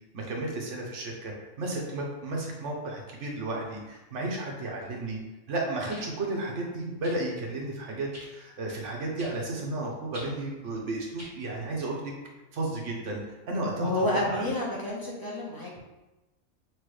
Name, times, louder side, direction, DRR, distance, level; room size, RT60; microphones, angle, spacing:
voice 1, 0.1-5.2 5.5-12.1 12.5-13.2 13.5-14.4, right 2 dB, 60° right, -1 dB, 1.2 m, -33 dB
sound 1, 4.8-4.9 5.9-6.1 7.0-7.2 8.1-8.3 9.2-9.4 10.1-10.3 11.2-11.3 12.3-12.4, equal, 10° right, 1.1 m, -44 dB
voice 2, 13.8-15.8, left 1 dB, 20° left, -5 dB, 1.0 m, -29 dB
6.1 x 2.7 x 3.2 m, 1.1 s
omnidirectional pair, 1.4 m